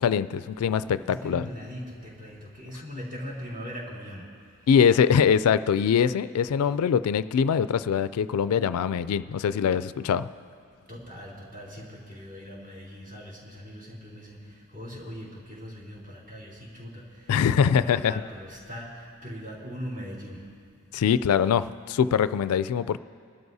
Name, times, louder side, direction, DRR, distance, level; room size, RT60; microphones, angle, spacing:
voice 1, 0.0-1.4 4.7-10.3 17.3-18.1 20.9-23.0, left 7 dB, 75° left, 14 dB, 0.3 m, -23 dB
voice 2, 1.1-4.3 10.9-20.4, equal, 40° right, -5 dB, 3.5 m, -40 dB
23.5 x 12.5 x 2.7 m, 2.2 s
head